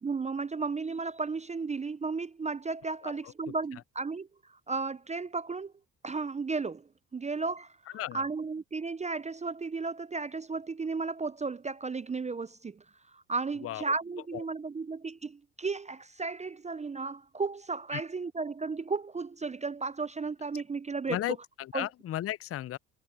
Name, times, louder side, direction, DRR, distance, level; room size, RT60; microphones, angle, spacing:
voice 1, 0.0-4.3 4.7-5.7 6.0-12.8 13.1-21.4 21.7-21.9, right 4 dB, 20° right, 0.6 m, -34 dB
voice 2, 21.1-22.8, left 13 dB, 35° left, 0.5 m, -34 dB
hypercardioid pair, 60°, 38 cm